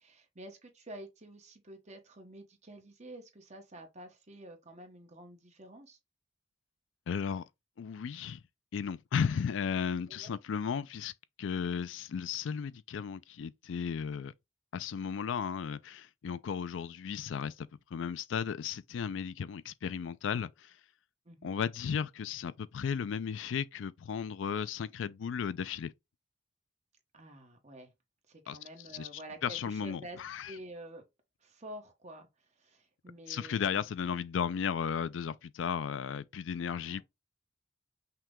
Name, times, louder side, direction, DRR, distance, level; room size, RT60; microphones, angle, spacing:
voice 1, 0.0-6.0 10.1-10.3 21.2-21.5 27.1-27.9 28.3-30.2 30.4-31.0 31.4-33.9 36.7-37.0, right 1 dB, 40° right, 1.1 m, -49 dB
voice 2, 7.1-7.4 7.8-8.4 8.7-11.1 11.4-14.3 14.7-20.8 21.4-25.9 28.5-28.6 28.9-30.5 33.3-37.0, left 7 dB, 85° left, 0.4 m, -35 dB
5.8 x 2.2 x 3.6 m
head